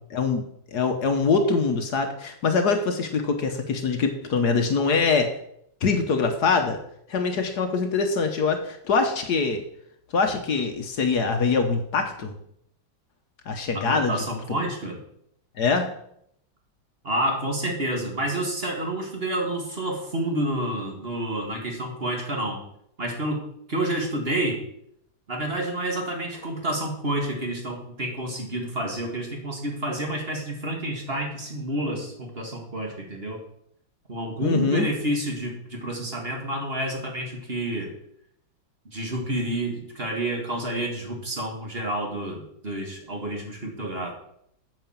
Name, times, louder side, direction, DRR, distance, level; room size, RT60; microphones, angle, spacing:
voice 1, 0.1-0.4 0.7-5.3 5.8-6.8 7.1-9.6 10.1-12.3 13.5-14.1 14.5-14.6 15.6-15.9 34.4-34.9, left 4 dB, 60° left, 6 dB, 1.5 m, -23 dB
voice 2, 13.7-15.0 17.0-22.6 23.0-23.4 23.7-24.6 25.3-33.4 34.1-37.9 38.9-44.1, right 1 dB, 30° right, 1 dB, 1.9 m, -29 dB
9.0 x 5.9 x 7.3 m, 0.72 s
omnidirectional pair, 2.0 m